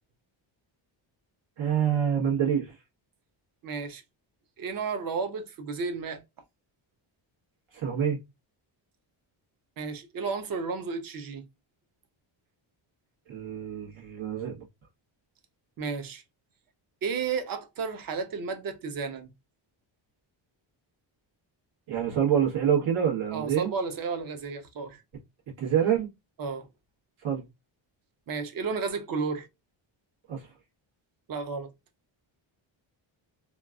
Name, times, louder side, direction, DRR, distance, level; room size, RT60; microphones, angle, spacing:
voice 1, 1.6-2.7 7.7-8.2 13.3-14.6 21.9-23.7 25.6-26.1 27.2-27.4 30.3-30.5, right 8 dB, 80° right, 1.4 m, -26 dB
voice 2, 3.6-4.0 4.6-6.2 9.8-11.4 15.8-16.2 17.0-19.3 23.3-25.0 26.4-26.7 28.3-29.5 31.3-31.7, right 5 dB, 45° right, 0.6 m, -32 dB
3.0 x 2.3 x 2.4 m
wide cardioid pair, 175°, 48 cm